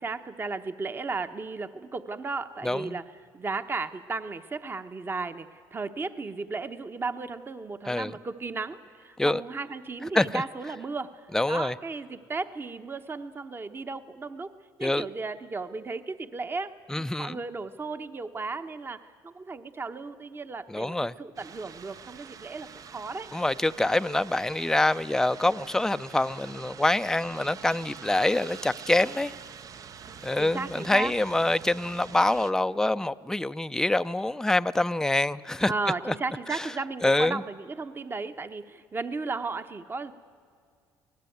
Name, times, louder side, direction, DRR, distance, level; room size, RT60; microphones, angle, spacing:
voice 1, 0.0-3.0 3.3-14.5 14.8-23.3 30.1-31.1 35.7-40.1, right 3 dB, 30° right, 1.0 m, -35 dB
voice 2, 2.6-3.0 7.9-8.1 9.2-9.4 10.1-10.4 11.3-11.7 14.8-15.1 16.9-17.4 20.7-21.1 23.3-29.3 30.2-35.7 36.1-36.2 36.5-36.7 37.0-37.4, left 2 dB, 5° left, 0.5 m, -25 dB
sound 1, 21.4-32.5, right 7 dB, 45° right, 0.7 m, -45 dB
25.0 x 18.0 x 9.3 m
cardioid pair, 90°, 8 cm